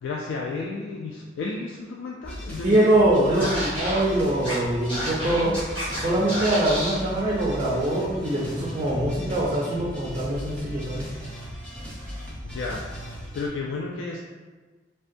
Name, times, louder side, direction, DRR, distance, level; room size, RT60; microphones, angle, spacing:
voice 1, 0.0-3.6 5.2-5.6 12.4-12.8 13.3-14.2, left 4 dB, 85° left, -2 dB, 0.3 m, -32 dB
sound 1, 2.2-13.5, equal, 5° left, 0.7 m, -37 dB
voice 2, 2.6-5.5 5.9-11.0, right 1 dB, 30° right, -5 dB, 0.4 m, -23 dB
Scratching (performance technique), 3.4-4.0 4.4-4.5 4.9-6.0 6.3-7.0, equal, 30° left, 1.2 m, -30 dB
3.5 x 2.2 x 2.5 m, 1.3 s
head